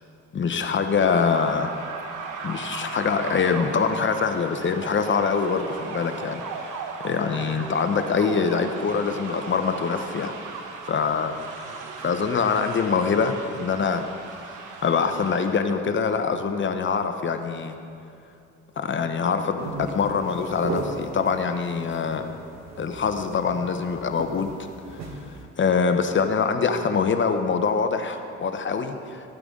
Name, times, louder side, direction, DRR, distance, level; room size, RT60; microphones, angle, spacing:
voice 1, 0.3-1.7 2.4-6.8 7.0-10.3 10.9-11.3 12.0-14.0 14.8-17.8 18.8-22.2 22.8-24.5 25.6-29.2, left 5 dB, 40° left, 7 dB, 0.9 m, -24 dB
sound 1, 0.8-15.7, right 5 dB, 80° right, 1.1 m, -37 dB
sound 2, 19.6-25.4, right 2 dB, 60° right, 1.4 m, -36 dB
13.5 x 9.1 x 3.7 m, 2.5 s
cardioid pair, 90°, 30 cm